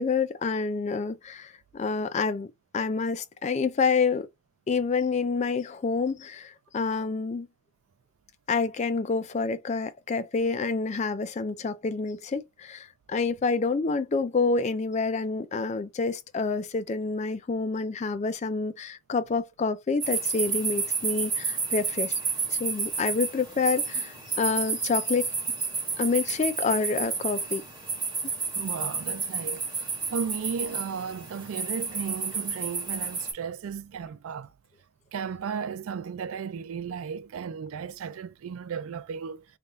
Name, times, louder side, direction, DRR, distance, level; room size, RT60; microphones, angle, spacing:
voice 1, 0.0-4.3 4.7-7.5 8.5-22.2 22.5-25.3 26.0-27.6, left 4 dB, 30° left, 0.3 m, -28 dB
sound 1, 20.0-33.3, right 5 dB, 20° right, 1.2 m, -31 dB
voice 2, 28.5-34.5 35.1-39.4, right 6 dB, 75° right, 0.4 m, -35 dB
3.4 x 2.3 x 3.9 m
head